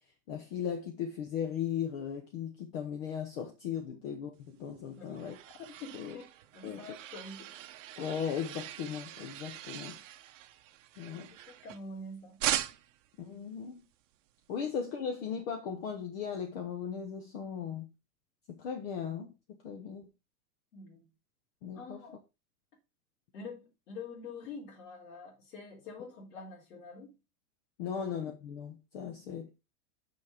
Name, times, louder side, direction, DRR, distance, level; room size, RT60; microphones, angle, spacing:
voice 1, 0.3-6.2 6.6-6.9 8.0-10.0 11.0-11.3 13.2-13.8 14.5-17.9 18.5-19.3 19.6-20.0 21.6-22.0 27.8-29.5, left 7 dB, 40° left, 1.1 m, -37 dB
sound 1, 4.7-12.0 12.4-13.1, right 13 dB, 55° right, 0.9 m, -40 dB
voice 2, 5.8-6.3 6.5-7.5 11.1-12.4 20.7-21.1 21.7-22.2 23.3-27.1 27.9-28.1, left 3 dB, 85° left, 4.0 m, -46 dB
6.3 x 6.1 x 5.0 m
supercardioid pair, 180°, 47 cm